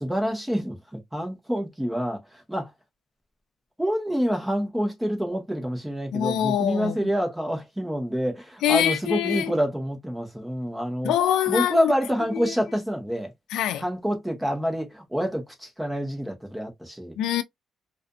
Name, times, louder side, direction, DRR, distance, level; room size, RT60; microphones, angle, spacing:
voice 1, 0.0-2.7 3.8-11.1 11.5-13.3 13.8-17.2, equal, 5° right, 1.0 m, -27 dB
voice 2, 6.1-7.1 8.6-9.5 11.0-11.9 12.3-12.5 13.5-13.8 17.2-17.4, left 11 dB, 85° left, 0.3 m, -24 dB
2.5 x 2.5 x 2.3 m
cardioid pair, 90°, 0 cm